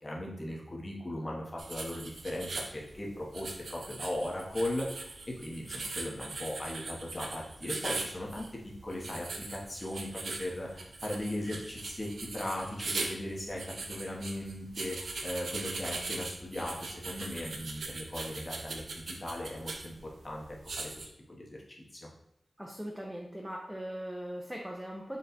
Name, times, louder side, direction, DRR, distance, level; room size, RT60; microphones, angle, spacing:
voice 1, 0.0-8.5 8.8-22.0, left 1 dB, 35° left, -3 dB, 1.1 m, -38 dB
sound 1, 1.6-21.1, right 3 dB, 85° right, 0.5 m, -41 dB
voice 2, 22.6-25.2, equal, 5° right, -1 dB, 0.6 m, -40 dB
4.2 x 2.4 x 4.1 m, 0.80 s
wide cardioid pair, 70°, 0 cm